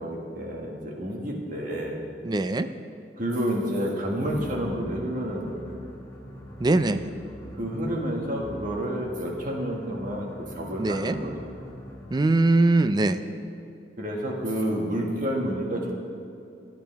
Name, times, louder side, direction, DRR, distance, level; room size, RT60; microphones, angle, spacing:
voice 1, 0.0-2.0 3.2-5.9 7.6-11.3 14.0-15.9, equal, 50° right, -1 dB, 1.9 m, -29 dB
voice 2, 2.2-2.7 6.6-7.0 10.8-11.2 12.1-13.2, right 2 dB, 25° right, 11 dB, 0.4 m, -21 dB
sound 1, 4.2-12.4, left 1 dB, 15° left, 1.7 m, -44 dB
17.5 x 10.5 x 3.5 m, 2.5 s
head